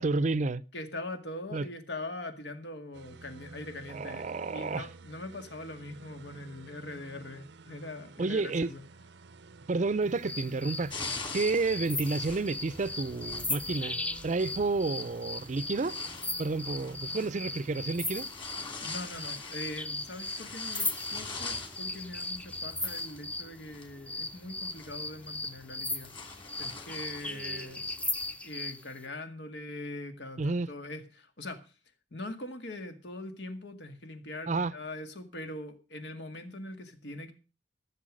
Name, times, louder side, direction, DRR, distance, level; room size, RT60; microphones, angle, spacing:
voice 1, 0.0-0.6 1.5-1.6 3.9-4.9 8.2-8.7 9.7-11.0 11.3-16.0 16.4-18.3 27.2-27.7 30.4-30.7 34.5-34.7, right 3 dB, 45° right, 0.5 m, -30 dB
voice 2, 0.7-8.8 18.8-27.9 28.4-31.7 32.1-37.3, left 2 dB, 85° left, 2.0 m, -42 dB
sound 1, 2.9-17.9, right 3 dB, 85° right, 0.6 m, -52 dB
sound 2, 10.2-23.5 24.1-28.8, left 2 dB, 10° left, 0.6 m, -37 dB
sound 3, 10.9-28.3, left 3 dB, 30° left, 2.4 m, -45 dB
14.5 x 6.9 x 6.4 m
head